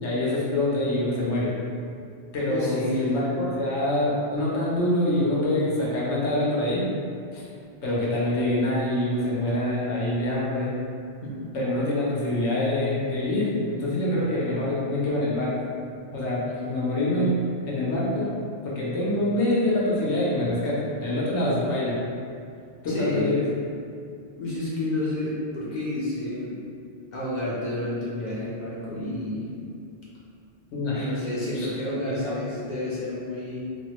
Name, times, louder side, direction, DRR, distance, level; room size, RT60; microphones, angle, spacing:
voice 1, 0.0-1.5 2.3-6.9 7.3-7.5 7.8-10.8 11.5-15.5 16.1-17.3 17.7-18.3 18.6-22.0 22.8-23.4 30.7-31.1 31.5-31.7 32.1-32.4, left 1 dB, 90° left, -6 dB, 1.1 m, -25 dB
voice 2, 2.5-3.0 11.2-11.5 22.9-23.3 24.4-26.6 27.1-29.5 30.9-33.6, left 1 dB, 50° left, -7 dB, 0.6 m, -30 dB
3.2 x 2.1 x 2.9 m, 2.3 s
omnidirectional pair, 1.2 m